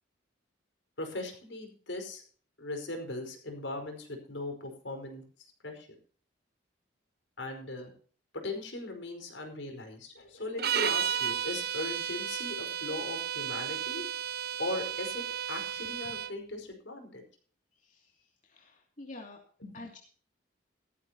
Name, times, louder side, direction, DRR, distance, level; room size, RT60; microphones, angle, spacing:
voice 1, 1.0-2.2 2.6-5.2 5.6-5.9 7.4-7.9 8.3-14.0 14.6-15.2 15.5-17.2 19.6-19.7, left 2 dB, 75° left, 4 dB, 5.1 m, -39 dB
sound 1, 10.6-16.4, right 9 dB, 55° right, 0.9 m, -33 dB
voice 2, 17.7-19.4 19.7-20.0, left 2 dB, 40° left, 0 dB, 2.7 m, -48 dB
16.0 x 14.5 x 3.0 m, 0.43 s
head